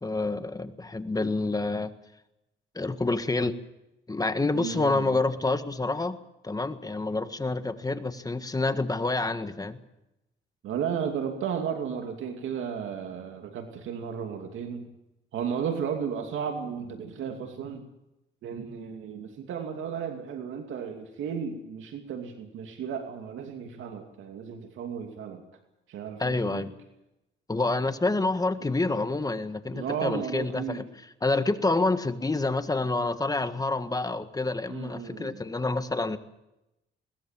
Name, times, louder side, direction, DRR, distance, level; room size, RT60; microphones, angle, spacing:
voice 1, 0.0-1.9 2.7-3.6 4.1-6.2 6.4-9.8 26.2-26.7 27.5-30.8 31.2-36.2, left 2 dB, 20° left, 10 dB, 1.6 m, -28 dB
voice 2, 4.5-5.2 10.6-14.9 15.3-17.8 18.4-25.4 25.9-26.7 29.7-30.8 34.7-35.4, right 7 dB, 80° right, 4 dB, 2.6 m, -34 dB
21.5 x 19.5 x 7.5 m, 0.91 s
cardioid pair, 90°, 20 cm